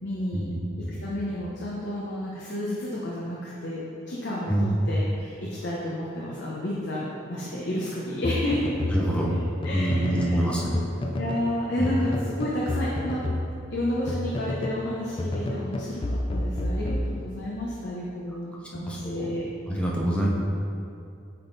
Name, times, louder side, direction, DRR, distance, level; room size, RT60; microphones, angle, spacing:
voice 1, 0.0-8.7 9.3-9.4 9.6-10.5 11.1-13.3 13.7-19.5, left 1 dB, 60° left, -6 dB, 0.8 m, -31 dB
sound 1, 8.2-10.4 10.7-11.5 11.8-14.8 15.2-17.6, left 1 dB, 25° left, 0.4 m, -30 dB
voice 2, 8.9-9.4 9.7-10.8 11.8-11.9 18.9-19.2 19.7-20.3, right 1 dB, 5° left, -4 dB, 0.8 m, -25 dB
8.5 x 3.7 x 3.9 m, 2.5 s
head